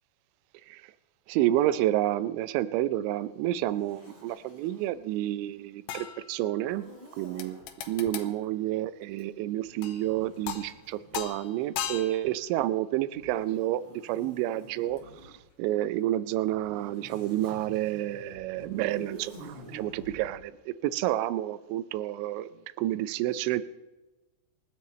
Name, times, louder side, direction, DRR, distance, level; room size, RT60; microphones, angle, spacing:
voice 1, 1.3-6.9 7.2-22.5 22.8-23.6, right 14 dB, 80° right, 14 dB, 2.8 m, -30 dB
Zipper (clothing), 3.6-5.0 6.6-7.7 9.1-12.3 13.1-15.4 16.3-20.3, right 1 dB, 30° right, 6.1 m, -49 dB
sound 1, 5.9-6.8 7.4-8.4 9.8-10.2 10.5-10.8 11.1-12.4 15.0-15.1, left 9 dB, 75° left, 2.7 m, -38 dB
28.0 x 13.5 x 3.2 m, 1.1 s
omnidirectional pair, 5.8 m